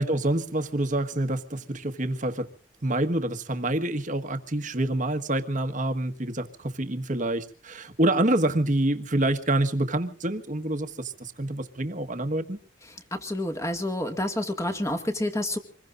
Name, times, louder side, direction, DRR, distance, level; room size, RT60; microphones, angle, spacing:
voice 1, 0.0-2.5 2.8-12.6, right 1 dB, 40° right, 7 dB, 1.5 m, -27 dB
voice 2, 13.1-15.6, left 1 dB, 15° left, 5 dB, 2.0 m, -28 dB
26.5 x 21.5 x 2.6 m, 0.41 s
head